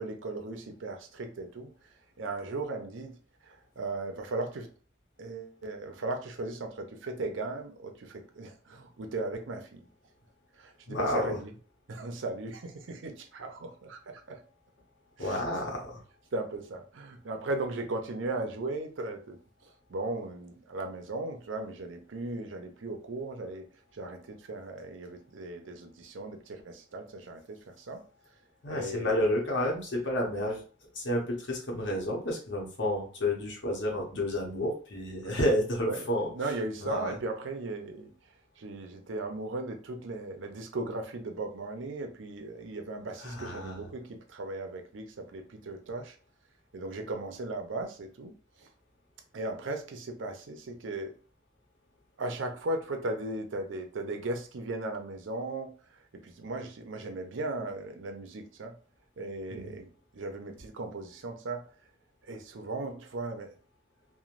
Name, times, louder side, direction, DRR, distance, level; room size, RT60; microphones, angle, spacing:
voice 1, 0.0-1.7 2.2-4.7 5.2-9.9 10.5-11.5 11.9-14.4 15.2-15.4 16.3-23.7 23.9-28.0 28.7-29.3 35.2-35.4 35.8-36.1 36.3-38.1 38.6-46.2 46.7-48.3 48.6-48.7 49.3-51.1 52.2-58.8 59.2-61.7 62.2-63.6, right 2 dB, 80° right, 0.5 m, -37 dB
voice 2, 10.9-11.4 15.2-16.0 28.6-30.6 30.9-36.3 36.8-37.2 43.2-43.9 59.5-59.8, left 1 dB, 65° left, 0.9 m, -30 dB
3.1 x 2.1 x 2.5 m
head